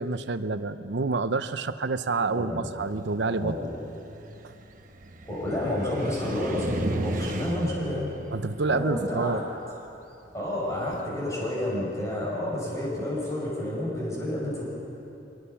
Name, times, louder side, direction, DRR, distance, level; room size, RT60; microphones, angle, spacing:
voice 1, 0.0-3.6 8.3-9.4, right 3 dB, 75° right, 12 dB, 0.7 m, -28 dB
voice 2, 2.2-2.7 3.2-3.7 5.2-8.1 8.7-9.4 10.3-14.6, left 1 dB, 15° left, -5 dB, 6.2 m, -30 dB
Car, 2.8-11.1, right 1 dB, 45° right, 1.1 m, -37 dB
24.5 x 20.0 x 5.7 m, 2.9 s
head